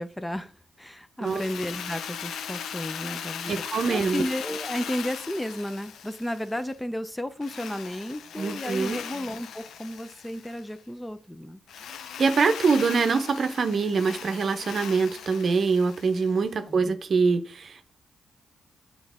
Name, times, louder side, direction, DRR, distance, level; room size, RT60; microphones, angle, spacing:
voice 1, 0.0-11.6 16.7-16.9, left 1 dB, 10° left, 0.6 m, -33 dB
Drill, 1.2-6.8 7.4-10.7 11.7-16.5, left 8 dB, 80° left, 0.4 m, -39 dB
voice 2, 3.4-4.2 8.4-9.0 12.2-17.8, right 4 dB, 60° right, 0.7 m, -24 dB
7.1 x 3.8 x 3.5 m
supercardioid pair, 50°, 0 cm